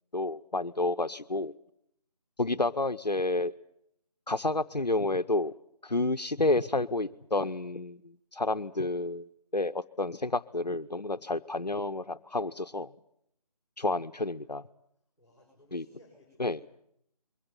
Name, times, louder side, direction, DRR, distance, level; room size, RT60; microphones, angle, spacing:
voice 1, 0.1-1.5 2.4-3.5 4.3-5.5 5.8-8.0 8.3-12.9 13.8-14.6 15.7-15.8 16.4-16.6, left 2 dB, 85° left, 12 dB, 0.9 m, -30 dB
voice 2, 15.2-16.6, left 1 dB, 5° right, -7 dB, 5.8 m, -60 dB
22.5 x 17.5 x 9.6 m, 0.74 s
figure-of-eight pair, 155°, 20 cm